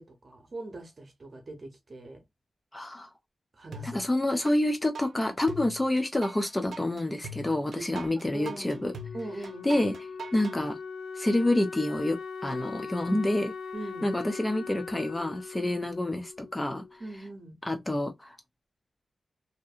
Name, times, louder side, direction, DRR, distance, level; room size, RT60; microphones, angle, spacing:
voice 1, 0.0-2.2 3.5-4.0 7.5-7.9 8.3-8.8 9.1-9.8 13.7-14.1 15.6-15.7 17.0-17.6, right 2 dB, 40° right, 0.8 m, -42 dB
voice 2, 2.7-3.1 3.8-8.9 9.6-9.9 10.3-10.8 11.2-13.5 14.0-16.8 17.7-18.4, left 1 dB, 15° left, 0.4 m, -28 dB
sound 1, 3.7-4.6 4.9-10.6, right 2 dB, 80° right, 0.5 m, -41 dB
Wind instrument woodwind instrument, 8.4-17.1, left 5 dB, 90° left, 0.5 m, -41 dB
2.6 x 2.6 x 2.3 m
wide cardioid pair, 170°, 0 cm